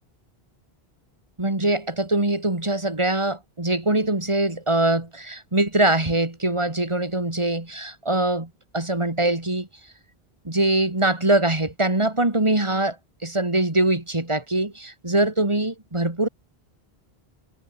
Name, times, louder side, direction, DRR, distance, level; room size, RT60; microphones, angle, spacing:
voice 1, 1.4-9.7 10.4-13.0 13.2-16.3, right 2 dB, 30° right, 2.9 m, -23 dB
omnidirectional pair, 1.1 m